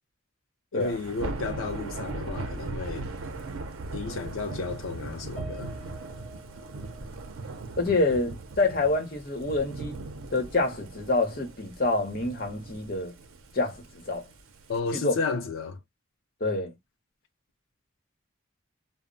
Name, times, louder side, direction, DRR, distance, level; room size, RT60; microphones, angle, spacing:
voice 1, 0.7-3.1 3.9-5.7 14.7-15.8, left 4 dB, 85° left, 0.5 m, -32 dB
Thunder / Rain, 0.8-14.8, right 2 dB, 90° right, 0.5 m, -39 dB
Piano, 5.4-9.8 10.2-10.4 10.8-10.9, right 1 dB, ahead, 0.7 m, -50 dB
voice 2, 7.8-10.0 10.3-13.1 13.5-14.2 15.0-15.2 16.4-16.7, left 2 dB, 45° left, 0.9 m, -27 dB
2.1 x 2.0 x 3.7 m
head